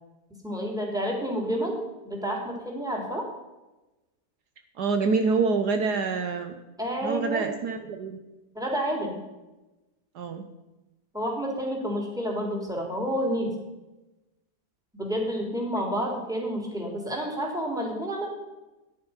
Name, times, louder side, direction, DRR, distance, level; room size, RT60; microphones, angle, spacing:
voice 1, 0.4-3.2 6.8-7.4 8.5-9.2 11.1-13.5 14.9-18.3, equal, ahead, -1 dB, 3.5 m, -29 dB
voice 2, 4.8-6.6 7.0-8.2 10.1-10.4, right 4 dB, 70° right, 7 dB, 1.5 m, -26 dB
13.5 x 11.0 x 5.8 m, 1.0 s
omnidirectional pair, 1.8 m